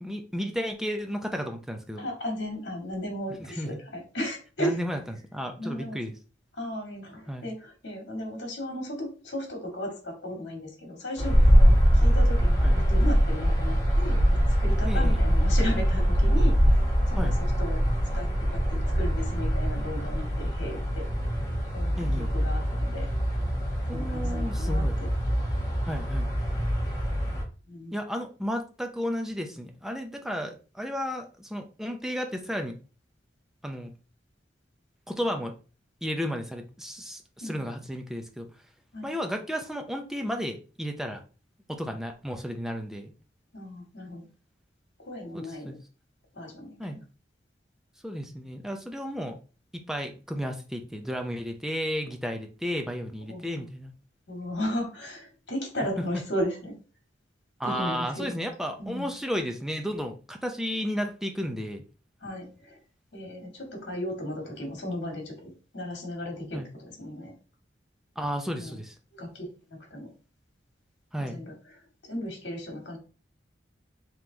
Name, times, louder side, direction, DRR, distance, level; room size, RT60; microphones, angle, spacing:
voice 1, 0.0-2.1 3.4-3.7 4.6-5.0 5.3-6.1 7.3-7.5 12.6-12.7 14.8-15.2 17.2-17.4 22.0-22.3 23.9-25.0 25.8-26.3 27.9-32.8 33.6-33.9 35.1-35.5 36.0-38.5 39.0-41.2 41.7-43.1 45.3-45.7 46.8-47.0 48.0-49.4 49.7-53.9 57.6-61.8 66.5-66.7 68.2-68.9 71.1-71.4, equal, ahead, 4 dB, 0.5 m, -33 dB
voice 2, 2.0-4.8 5.6-6.0 6.6-17.3 17.6-17.8 18.1-21.1 21.7-23.1 23.9-25.1 27.7-27.9 35.3-35.4 37.4-37.7 38.9-39.1 43.5-44.3 45.0-45.8 46.3-47.0 53.3-53.5 54.3-56.7 57.6-58.4 58.8-59.1 62.2-62.8 63.1-67.3 68.6-68.8 69.1-70.1 71.3-71.5 72.1-73.0, equal, 70° left, 1 dB, 1.9 m, -35 dB
sound 1, 11.2-27.4, equal, 20° left, 1.5 m, -23 dB
3.7 x 3.0 x 3.8 m, 0.35 s
head